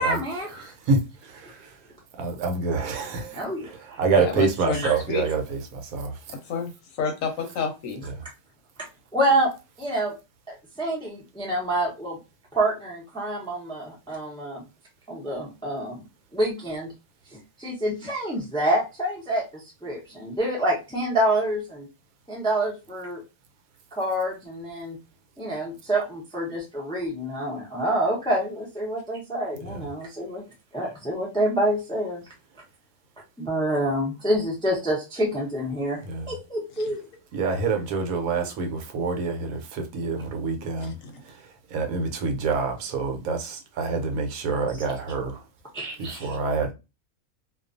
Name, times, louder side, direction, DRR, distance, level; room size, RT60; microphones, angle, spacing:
voice 1, 0.0-0.7 3.3-3.7 4.7-4.9 9.1-9.5 9.8-10.1 10.5-12.2 12.5-14.6 15.1-16.0 16.3-16.9 17.6-21.9 22.3-23.2 23.9-25.0 25.4-30.4 30.7-32.2 33.4-36.0 36.3-37.0 45.7-46.4, right 1 dB, 5° left, 0.4 m, -27 dB
voice 2, 0.6-1.8 2.2-6.2 29.7-29.9 36.0-36.3 37.3-40.9 41.2-45.4 46.0-46.7, right 4 dB, 75° right, 1.0 m, -27 dB
voice 3, 4.1-5.3 6.3-6.7 7.0-8.1 36.8-36.9 41.0-41.2, left 6 dB, 65° left, 1.0 m, -30 dB
2.4 x 2.3 x 2.5 m
omnidirectional pair, 1.6 m